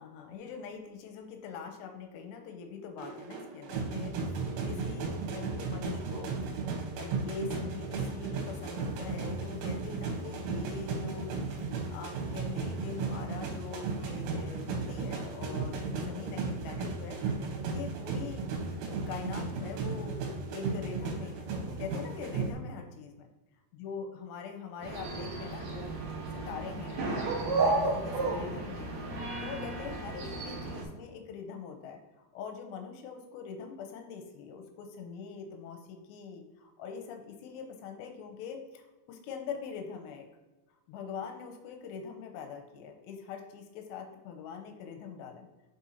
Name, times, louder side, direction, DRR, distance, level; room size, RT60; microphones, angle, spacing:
voice 1, 0.0-6.3 7.0-11.3 11.6-18.5 18.9-20.2 20.5-23.3 23.7-25.9 26.3-28.9 29.4-40.3 40.9-45.5, left 6 dB, 80° left, 4 dB, 2.8 m, -43 dB
sound 1, 3.0-22.5, right 4 dB, 90° right, 3.6 m, -35 dB
sound 2, 24.8-30.8, right 3 dB, 70° right, 1.7 m, -33 dB
9.3 x 4.4 x 2.8 m, 1.1 s
omnidirectional pair, 5.4 m